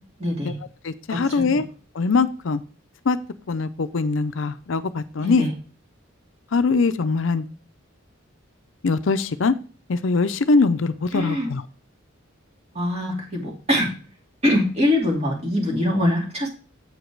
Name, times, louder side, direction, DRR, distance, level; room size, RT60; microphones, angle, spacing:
voice 1, 0.2-0.5 1.1-1.6 5.2-5.5 11.1-11.5 12.7-13.9 14.4-16.5, left 1 dB, 30° right, -1 dB, 2.8 m, -23 dB
voice 2, 0.8-1.7 2.0-2.6 3.1-3.2 3.5-5.5 6.5-7.4 8.8-9.5 9.9-11.6, left 4 dB, 65° left, 12 dB, 0.5 m, -22 dB
8.0 x 5.1 x 4.6 m, 0.39 s
head